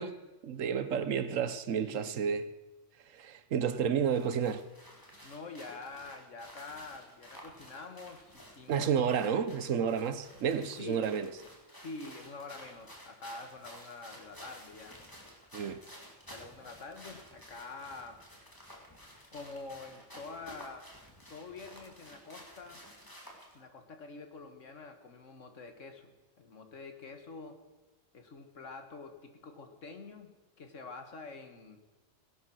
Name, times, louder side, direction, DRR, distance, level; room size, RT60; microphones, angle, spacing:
voice 1, 0.0-2.5 3.1-4.6 8.7-11.3 15.5-15.8, right 7 dB, 80° right, 1.2 m, -31 dB
voice 2, 1.8-2.2 5.2-8.9 10.8-11.2 11.8-15.0 16.3-18.3 19.3-20.9 21.3-22.9 23.5-27.6 28.1-31.8, left 3 dB, 70° left, 1.9 m, -46 dB
sound 1, 4.1-23.6, equal, 15° left, 2.3 m, -53 dB
17.5 x 11.5 x 6.3 m
omnidirectional pair, 1.3 m